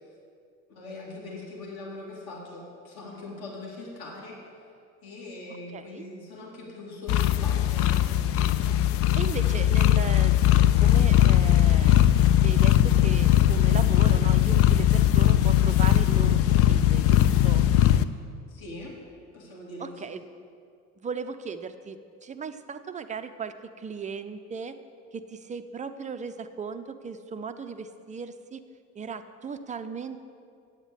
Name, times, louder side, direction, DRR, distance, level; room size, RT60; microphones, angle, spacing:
voice 1, 0.7-4.4 5.0-7.9 18.5-19.0 19.3-20.0, left 2 dB, 50° left, -3 dB, 2.7 m, -41 dB
voice 2, 5.7-6.1 9.2-10.4 10.8-12.1 12.4-17.6 19.8-20.2 21.0-24.8 25.1-28.6 28.9-30.2, right 5 dB, 15° right, 10 dB, 0.5 m, -37 dB
sound 1, 7.1-18.0, left 12 dB, 35° left, 0.4 m, -20 dB
8.7 x 8.0 x 7.8 m, 2.3 s
figure-of-eight pair, 55°, 46 cm